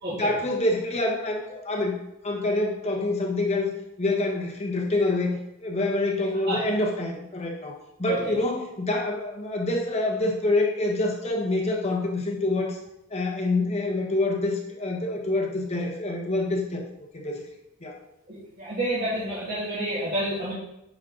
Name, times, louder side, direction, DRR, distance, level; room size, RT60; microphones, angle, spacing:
voice 1, 0.1-2.0 2.2-3.7 4.0-12.8 13.1-16.8 17.1-17.4 17.8-18.0, left 2 dB, 30° left, -1 dB, 1.2 m, -26 dB
voice 2, 18.3-20.5, right 1 dB, 45° right, -10 dB, 2.4 m, -29 dB
9.6 x 5.4 x 3.9 m, 0.87 s
head